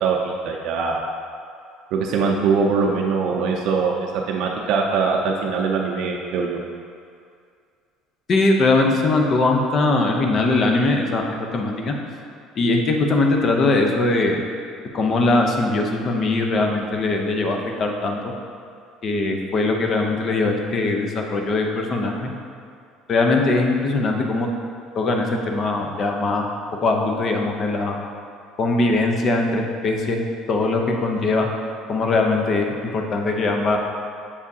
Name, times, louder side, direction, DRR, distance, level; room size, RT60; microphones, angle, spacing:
voice 1, 0.0-1.0 1.9-6.6, right 5 dB, 65° right, 0 dB, 0.5 m, -22 dB
voice 2, 8.3-11.9 12.6-14.4 14.9-18.2 19.0-22.3 23.1-24.5 24.9-26.5 26.8-28.0 28.6-31.5 31.9-33.8, left 2 dB, 40° left, 2 dB, 0.7 m, -21 dB
7.0 x 4.9 x 2.7 m, 2.3 s
cardioid pair, 125°, 0 cm